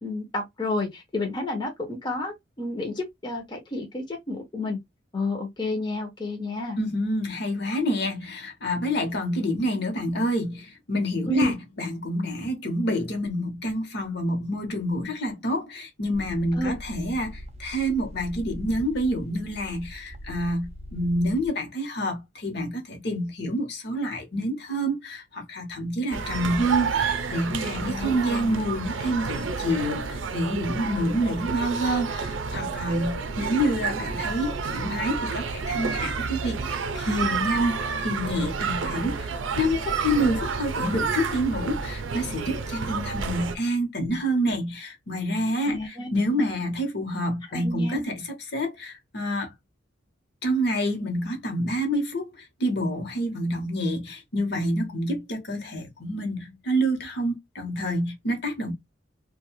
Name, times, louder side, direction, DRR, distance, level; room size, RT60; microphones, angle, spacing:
voice 1, 0.0-4.8 5.1-6.8 11.3-11.5 16.5-16.8 27.8-28.6 45.6-46.1 46.4-46.5 47.5-48.0, left 1 dB, 25° left, 0.6 m, -30 dB
voice 2, 6.8-49.5 50.4-58.7, equal, 60° left, 0.9 m, -28 dB
sound 1, 16.1-21.5, equal, 35° right, 0.4 m, -41 dB
sound 2, 26.1-43.6, right 5 dB, 90° right, 0.5 m, -30 dB
2.6 x 2.2 x 3.0 m
head